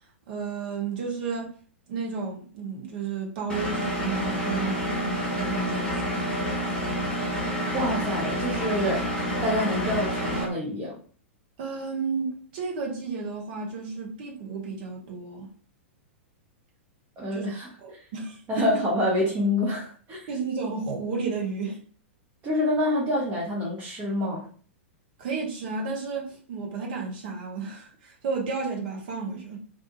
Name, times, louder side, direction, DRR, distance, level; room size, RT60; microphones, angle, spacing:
voice 1, 0.0-1.5 1.9-6.4 11.6-15.5 17.3-17.5 17.8-18.8 20.3-21.8 25.2-29.6, right 4 dB, 50° right, 1.0 m, -32 dB
Engine, 3.5-10.4, equal, 10° left, 1.0 m, -28 dB
voice 2, 7.7-9.0 9.4-11.0 17.2-18.0 18.5-20.3 22.4-24.5, left 1 dB, 25° right, 0.9 m, -27 dB
2.6 x 2.3 x 2.8 m
figure-of-eight pair, 100°, 7 cm